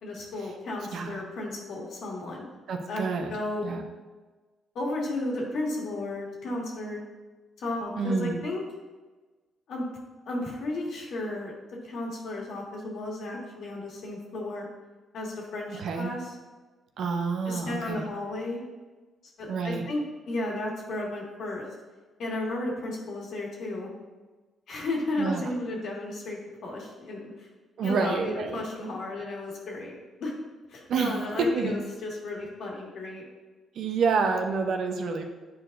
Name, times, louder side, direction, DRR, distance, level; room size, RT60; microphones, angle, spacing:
voice 1, 0.0-2.6 2.9-3.8 4.8-7.0 7.6-8.6 9.7-9.9 10.3-11.5 11.8-14.7 15.1-16.2 17.5-18.6 19.4-21.7 22.2-23.9 24.7-27.5 27.8-30.3 30.7-33.3, left 2 dB, 70° left, -2 dB, 1.7 m, -34 dB
voice 2, 0.9-1.2 2.7-3.3 3.6-3.8 8.0-8.4 15.7-16.1 17.0-18.1 19.5-19.8 25.2-25.5 27.8-28.6 30.9-31.8 33.7-35.2, right 4 dB, 70° right, 4 dB, 0.7 m, -28 dB
9.6 x 4.6 x 2.6 m, 1.3 s
cardioid pair, 90°, 0 cm